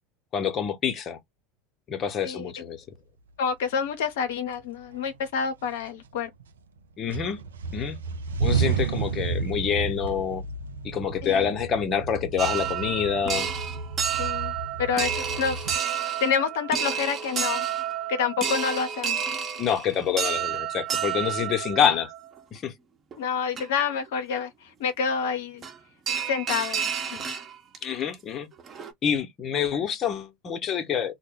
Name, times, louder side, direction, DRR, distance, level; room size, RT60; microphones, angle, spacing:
voice 1, 0.3-1.2 1.9-2.8 7.0-7.4 7.7-8.0 8.4-10.4 10.8-13.5 19.6-22.1 22.5-22.7 27.8-28.5 29.0-31.1, left 8 dB, 40° left, 0.7 m, -27 dB
voice 2, 3.4-6.3 11.2-11.5 14.2-14.5 14.8-17.7 18.1-19.2 23.2-25.6 26.2-27.3, left 6 dB, 75° left, 0.5 m, -28 dB
sound 1, 3.9-4.0 4.5-5.2 5.6-6.8 7.1-15.8, right 5 dB, 85° right, 0.4 m, -31 dB
sound 2, 12.4-22.4 23.1-23.2 23.6-23.7 25.6-25.8 26.1-27.8 28.1-28.2 28.6-28.9, right 8 dB, 35° right, 0.8 m, -30 dB
2.1 x 2.0 x 3.6 m
hypercardioid pair, 85°, 0 cm